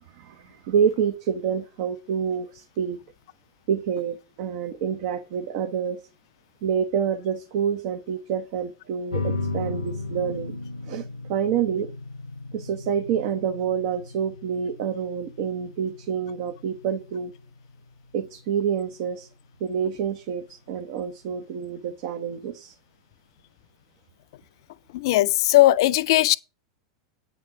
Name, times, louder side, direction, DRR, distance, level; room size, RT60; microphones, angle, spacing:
voice 1, 0.2-3.0 3.7-6.0 6.6-10.6 10.9-11.9 12.5-17.3 18.1-19.3 19.6-22.7, right 7 dB, 60° right, 1.0 m, -27 dB
sound 1, 9.1-20.1, left 3 dB, 90° left, 0.8 m, -36 dB
voice 2, 24.9-26.4, left 16 dB, 65° left, 0.4 m, -18 dB
8.5 x 4.3 x 6.9 m
hypercardioid pair, 95°, 3 cm